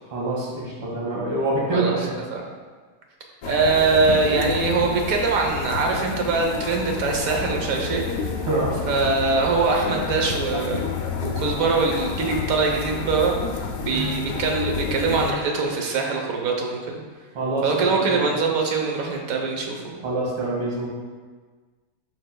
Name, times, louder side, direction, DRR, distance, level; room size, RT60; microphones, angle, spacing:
voice 1, 0.1-2.1 8.4-8.8 17.3-18.4 20.0-20.9, right 2 dB, 80° right, -5 dB, 2.7 m, -26 dB
voice 2, 1.7-2.4 3.5-8.2 8.9-10.9 11.2-13.4 13.8-17.0 17.6-20.0, right 4 dB, 55° right, 1 dB, 1.0 m, -23 dB
sound 1, 3.4-15.3, left 5 dB, 85° left, 0.7 m, -30 dB
12.0 x 4.5 x 2.2 m, 1.4 s
omnidirectional pair, 2.3 m